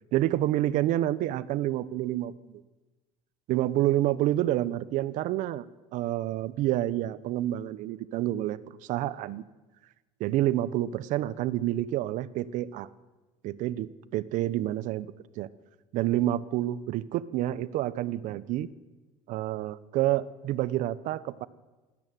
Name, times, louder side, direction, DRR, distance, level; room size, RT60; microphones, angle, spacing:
voice 1, 0.1-2.6 3.5-5.6 5.9-9.4 10.2-12.9 13.4-15.5 15.9-18.7 19.3-21.5, right 14 dB, 60° right, 18 dB, 1.1 m, -28 dB
19.5 x 17.5 x 9.3 m, 1.2 s
supercardioid pair, 95°, 14 cm